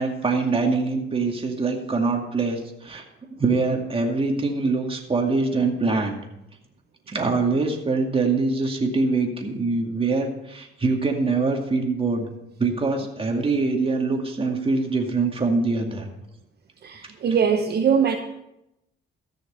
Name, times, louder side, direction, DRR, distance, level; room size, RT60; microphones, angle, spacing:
voice 1, 0.0-3.0 3.4-6.2 7.1-12.3 12.6-16.1, right 3 dB, 30° right, 2 dB, 2.3 m, -24 dB
voice 2, 16.8-18.2, right 7 dB, 55° right, 4 dB, 1.0 m, -21 dB
14.5 x 6.5 x 5.6 m, 0.85 s
cardioid pair, 90°, 20 cm